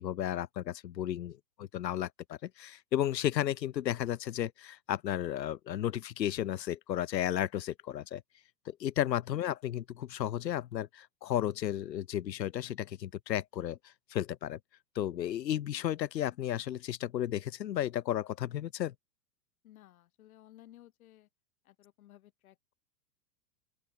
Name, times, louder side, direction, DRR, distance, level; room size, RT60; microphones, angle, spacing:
voice 1, 0.0-8.2 8.7-14.6 15.0-18.9, left 11 dB, 80° left, 0.7 m, -33 dB
voice 2, 19.6-21.3 21.6-22.7, left 14 dB, 55° left, 2.6 m, -57 dB
open air
figure-of-eight pair, 100°, 49 cm